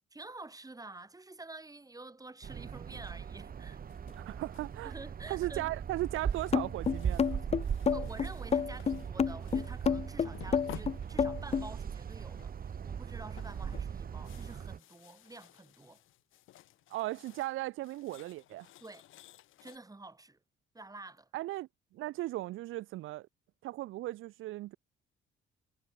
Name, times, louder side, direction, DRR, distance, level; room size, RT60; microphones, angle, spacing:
voice 1, 0.1-3.8 4.8-5.7 7.9-16.0 18.8-19.0 19.6-20.4 20.7-21.3, right 2 dB, 20° right, 7.9 m, -49 dB
sound 1, 2.4-14.8, right 7 dB, 45° right, 2.1 m, -39 dB
sound 2, 3.9-4.8 5.2-5.7 6.3-9.9 10.2-11.7 12.2-12.7 13.0-17.6 17.8-19.8, left 14 dB, 85° left, 5.3 m, -54 dB
voice 2, 4.2-4.9 5.3-7.4 16.9-18.7 21.3-23.3 23.6-24.8, right 17 dB, 90° right, 1.0 m, -37 dB
sound 3, 6.5-11.7, left 7 dB, 30° left, 0.6 m, -29 dB
cardioid pair, 90°, 20 cm